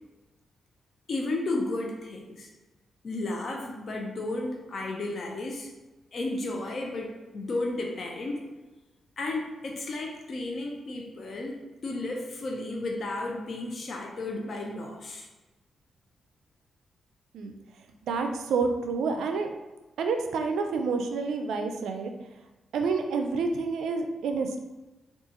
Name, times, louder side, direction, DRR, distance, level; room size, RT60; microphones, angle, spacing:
voice 1, 1.1-2.5 3.0-5.7 6.1-8.4 9.2-15.3, left 2 dB, 55° left, 1 dB, 0.5 m, -33 dB
voice 2, 18.1-19.5 20.0-22.1 22.7-24.6, right 4 dB, 90° right, 5 dB, 0.3 m, -28 dB
3.7 x 2.3 x 2.8 m, 1.1 s
cardioid pair, 90°, 0 cm